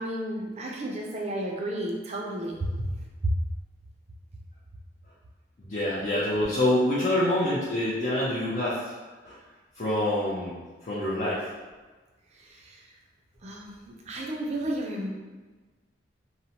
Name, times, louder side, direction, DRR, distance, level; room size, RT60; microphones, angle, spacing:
voice 1, 0.0-2.7 12.4-12.8 13.4-15.1, right 1 dB, 35° right, -1 dB, 0.4 m, -33 dB
voice 2, 5.6-8.9 9.2-9.3 9.8-11.4, left 1 dB, 40° left, -9 dB, 0.5 m, -26 dB
2.8 x 2.0 x 2.8 m, 1.3 s
head